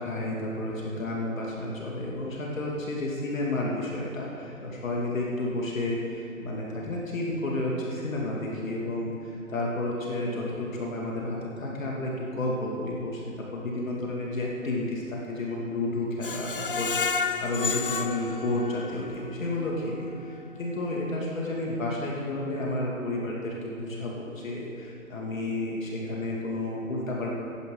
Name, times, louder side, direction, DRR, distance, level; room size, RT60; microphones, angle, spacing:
voice 1, 0.0-13.2 13.5-27.3, left 2 dB, 65° left, -3 dB, 2.5 m, -31 dB
Screech, 16.2-19.2 19.6-19.7 20.1-20.2, left 5 dB, 40° left, 0.4 m, -31 dB
17.0 x 11.5 x 3.9 m, 2.7 s
hypercardioid pair, 155°, 43 cm